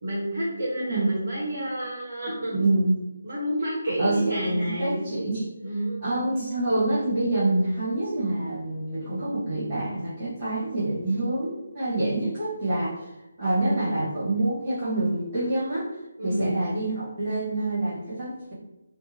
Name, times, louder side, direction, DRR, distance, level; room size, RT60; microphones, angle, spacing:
voice 1, 0.0-2.5 3.2-5.0 5.6-6.0 16.2-16.6, equal, 50° right, -5 dB, 0.9 m, -29 dB
voice 2, 0.7-1.1 2.5-3.0 3.5-5.5 6.0-13.1 13.4-18.5, right 2 dB, 25° right, -9 dB, 1.2 m, -27 dB
2.9 x 2.1 x 2.7 m, 0.97 s
figure-of-eight pair, 150°, 0 cm